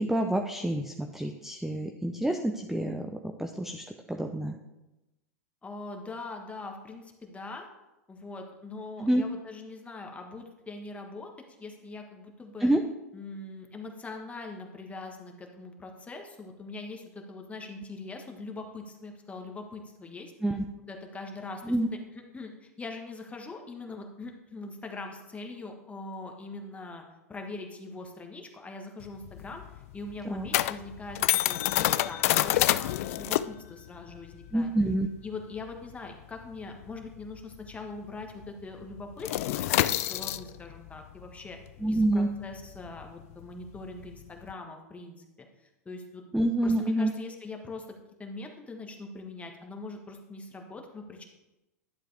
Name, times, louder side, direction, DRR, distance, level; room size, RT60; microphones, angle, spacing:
voice 1, 0.0-4.6 9.0-9.2 12.6-12.8 20.4-20.6 21.6-21.9 30.2-30.5 34.5-35.1 41.8-42.3 46.3-47.1, right 1 dB, 5° right, 4 dB, 0.6 m, -27 dB
voice 2, 5.6-7.7 8.1-11.3 11.6-12.7 13.1-20.3 20.9-21.7 22.3-27.0 27.3-29.6 29.9-34.7 35.2-41.6 41.9-45.5 45.8-46.2 46.6-47.9 48.2-51.3, left 3 dB, 15° left, 3 dB, 1.5 m, -42 dB
sound 1, 29.0-38.0 38.2-38.5 38.8-44.5, left 15 dB, 60° left, 0.4 m, -29 dB
11.5 x 7.4 x 3.4 m, 0.99 s
hypercardioid pair, 95°, 9 cm